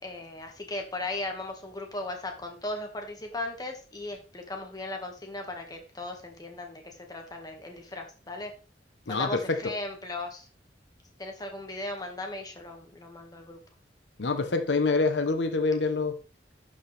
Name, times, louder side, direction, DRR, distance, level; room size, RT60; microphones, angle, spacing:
voice 1, 0.0-8.5 9.1-10.5 11.2-13.6, left 2 dB, 25° left, 1.8 m, -37 dB
voice 2, 9.1-9.7 14.2-16.2, left 3 dB, 90° left, 0.9 m, -26 dB
11.5 x 5.4 x 3.4 m
head